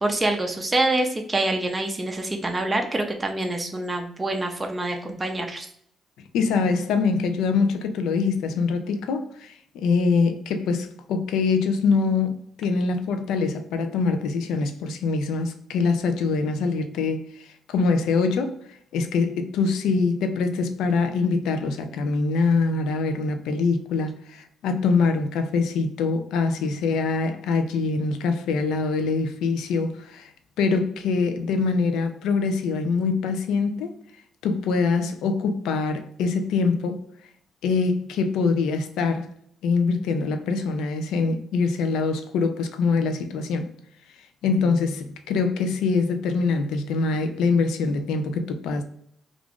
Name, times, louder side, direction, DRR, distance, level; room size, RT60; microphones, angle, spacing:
voice 1, 0.0-5.7, right 2 dB, 20° right, 0.5 m, -26 dB
voice 2, 6.3-18.6 18.9-30.3 30.6-34.0 34.4-37.0 37.6-39.3 39.6-43.7 44.4-48.8, left 4 dB, 85° left, 0.4 m, -24 dB
2.4 x 2.4 x 3.5 m
cardioid pair, 90°, 0 cm